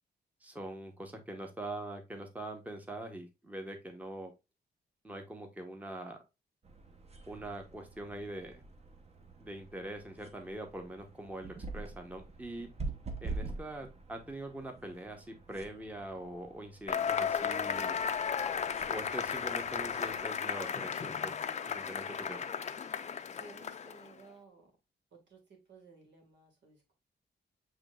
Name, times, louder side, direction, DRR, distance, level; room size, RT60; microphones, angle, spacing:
voice 1, 0.4-4.3 5.0-6.2 7.3-8.6 9.4-12.7 13.2-18.0 18.9-21.3 21.7-22.4, right 1 dB, 10° right, 4 dB, 0.8 m, -43 dB
sound 1, 6.6-20.3, right 3 dB, 35° right, 0.8 m, -46 dB
Cheering / Applause / Crowd, 16.9-24.1, left 7 dB, 40° left, 0.5 m, -34 dB
voice 2, 23.4-24.7 25.1-26.9, right 3 dB, 85° right, 2 dB, 1.8 m, -56 dB
7.2 x 3.1 x 2.3 m, 0.24 s
wide cardioid pair, 140°, 18 cm